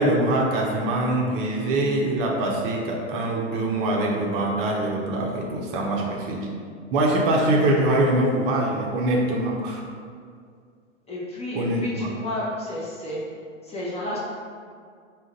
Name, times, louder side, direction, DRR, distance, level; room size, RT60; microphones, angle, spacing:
voice 1, 0.0-6.5 6.9-9.8 11.5-12.1, right 1 dB, 45° right, -1 dB, 0.6 m, -23 dB
voice 2, 5.7-6.2 11.1-13.2 13.6-14.2, left 1 dB, 15° left, -6 dB, 0.7 m, -32 dB
3.6 x 2.2 x 3.8 m, 2.1 s
hypercardioid pair, 100°, 37 cm